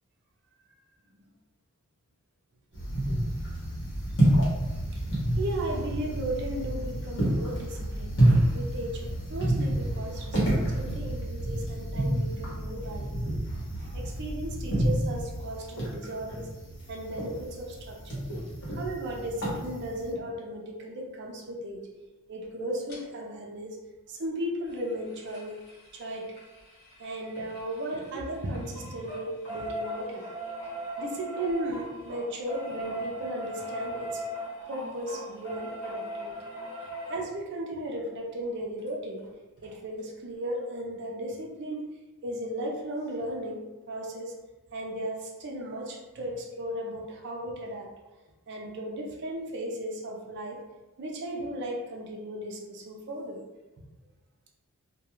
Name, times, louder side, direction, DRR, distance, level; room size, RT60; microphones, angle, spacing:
sound 1, 2.7-20.1, right 1 dB, 55° left, 0.9 m, -29 dB
voice 1, 5.3-13.4 13.8-16.5 16.9-18.2 18.7-21.9 22.3-23.8 24.1-25.6 25.9-26.3 27.0-30.2 31.0-34.2 34.7-36.5 37.1-39.2 39.6-41.9 42.2-44.3 44.7-47.9 48.5-50.6 51.0-53.4, right 1 dB, 50° right, 0 dB, 0.4 m, -36 dB
sound 2, 22.9-23.0 24.6-28.2 28.5-37.2 38.9-39.0 39.2-39.3 39.6-39.7, equal, 75° left, 1.1 m, -39 dB
2.2 x 2.2 x 2.9 m, 1.1 s
head